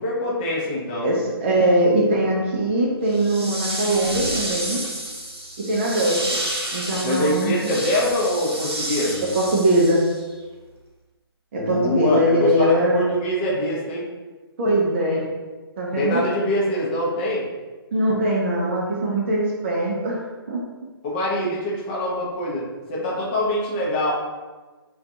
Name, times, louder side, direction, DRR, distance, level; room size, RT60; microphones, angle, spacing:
voice 1, 0.0-1.1 7.0-9.3 11.5-14.0 16.0-17.4 21.0-24.2, left 1 dB, 25° left, -6 dB, 0.5 m, -24 dB
voice 2, 1.0-4.8 5.7-6.2 6.7-7.7 9.2-10.0 11.5-13.0 14.6-15.2 15.8-16.2 17.9-20.2 20.5-20.6, right 1 dB, 30° right, -3 dB, 0.4 m, -21 dB
sound 1, 3.1-10.3, right 1 dB, 90° right, 0.6 m, -30 dB
2.4 x 2.2 x 2.6 m, 1.3 s
figure-of-eight pair, 135°, 13 cm